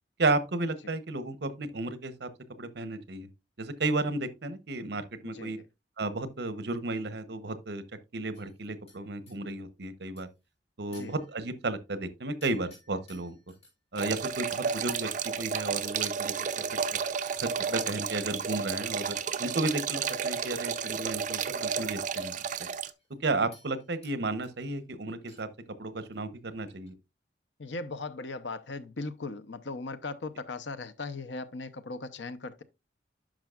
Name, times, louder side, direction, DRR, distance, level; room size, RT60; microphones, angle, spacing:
voice 1, 0.2-2.3 2.6-3.3 3.6-5.6 6.0-7.8 8.1-10.3 10.8-13.4 13.9-15.1 15.4-16.6 17.4-22.7 23.2-25.5 25.8-26.9, right 2 dB, 65° right, 0.9 m, -33 dB
voice 2, 5.2-5.7 10.9-11.2 27.6-32.6, left 3 dB, 80° left, 0.7 m, -38 dB
sound 1, 8.3-9.4 10.2-10.5 10.9-11.7 12.4-13.7 14.1-15.2 16.5-17.9 18.5-18.7 19.0-19.4 20.2-20.3 20.6-21.3 21.5-21.6 22.3-23.2 23.5-24.2 24.4-24.8 25.1-25.7 25.9-26.2 26.5-26.9, left 2 dB, 35° left, 5.1 m, -59 dB
sound 2, 14.0-22.9, right 6 dB, 45° right, 0.5 m, -32 dB
10.5 x 6.1 x 2.4 m
head